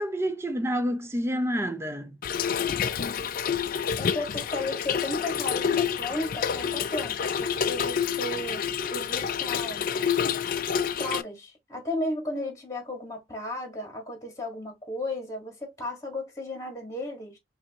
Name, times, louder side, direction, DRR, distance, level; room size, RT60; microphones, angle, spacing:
voice 1, 0.0-2.2, equal, 15° right, 0.5 m, -28 dB
Trickle dribble / Fill (with liquid), 2.2-11.2, left 7 dB, 50° left, 0.4 m, -28 dB
voice 2, 4.0-9.9 11.0-17.4, left 1 dB, 15° left, 1.6 m, -34 dB
5.5 x 2.6 x 2.8 m
head